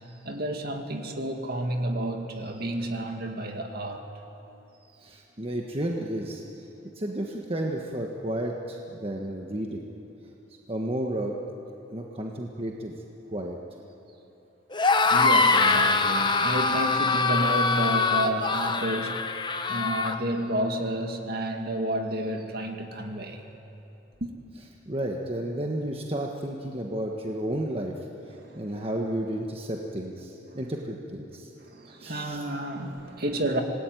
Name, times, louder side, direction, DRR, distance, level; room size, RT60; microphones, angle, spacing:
voice 1, 0.2-4.1 15.1-19.3 19.7-23.4 24.2-24.3 28.3-28.8 30.5-30.6 31.6-33.6, right 1 dB, 50° right, 4 dB, 2.3 m, -31 dB
voice 2, 5.0-6.4 6.9-9.9 10.7-11.3 11.9-12.9 13.3-13.6 24.8-27.9 28.3-31.5 31.9-32.4, right 1 dB, 30° right, 0 dB, 1.4 m, -32 dB
sound 1, 14.7-20.2, left 3 dB, 25° left, 1.0 m, -23 dB
26.0 x 19.5 x 9.3 m, 2.9 s
head